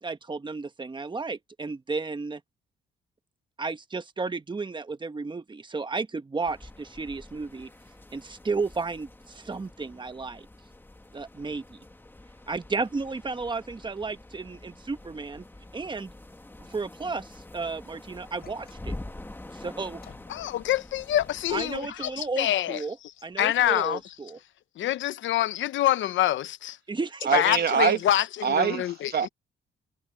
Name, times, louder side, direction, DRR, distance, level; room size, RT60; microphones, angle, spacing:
voice 1, 0.0-2.4 3.6-7.7 8.1-10.5 11.1-11.8 12.5-15.4 15.7-16.1 16.7-18.9 19.5-20.0 21.5-23.0 23.2-24.4 26.9-27.3, right 4 dB, 25° right, 1.4 m, -33 dB
sound 1, 6.4-21.8, left 1 dB, 10° left, 1.8 m, -46 dB
sound 2, 18.4-19.3 20.0-22.3 23.0-24.1, left 7 dB, 50° left, 5.4 m, -55 dB
voice 2, 20.3-22.8 23.4-24.0 24.8-26.8 27.3-29.1, left 13 dB, 75° left, 0.8 m, -26 dB
voice 3, 27.2-28.0 28.4-29.3, right 7 dB, 55° right, 2.0 m, -24 dB
cardioid pair, 90°, 20 cm